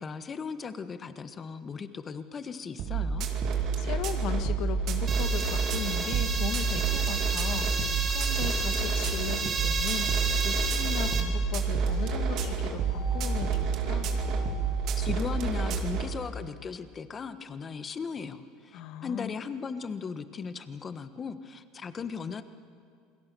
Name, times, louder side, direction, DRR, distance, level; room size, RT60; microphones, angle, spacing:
voice 1, 0.0-3.3 15.0-22.4, left 5 dB, 25° left, 11 dB, 1.3 m, -37 dB
sound 1, 2.8-16.1, right 5 dB, 55° right, 2.6 m, -29 dB
voice 2, 3.5-14.1 18.7-19.4, left 11 dB, 60° left, 10 dB, 1.6 m, -38 dB
sound 2, 5.1-11.2, right 4 dB, 30° right, 3.0 m, -32 dB
sound 3, 8.2-15.9, left 3 dB, 90° left, 5.2 m, -48 dB
28.0 x 21.5 x 6.9 m, 2.4 s
supercardioid pair, 125°, 0 cm